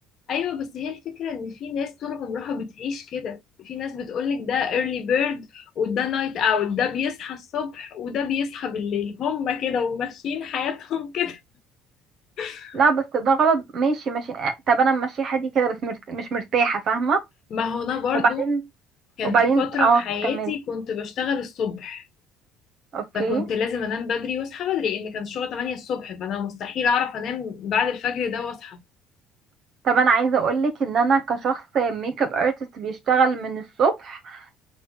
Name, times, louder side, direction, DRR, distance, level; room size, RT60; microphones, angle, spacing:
voice 1, 0.3-11.4 12.4-12.8 17.5-18.4 19.2-22.0 23.1-28.8, left 7 dB, 55° left, 1.2 m, -27 dB
voice 2, 12.7-17.2 18.4-18.6 19.2-20.5 22.9-23.4 29.8-34.4, right 5 dB, 50° right, 1.1 m, -22 dB
4.1 x 2.3 x 4.6 m
supercardioid pair, 85°, 0 cm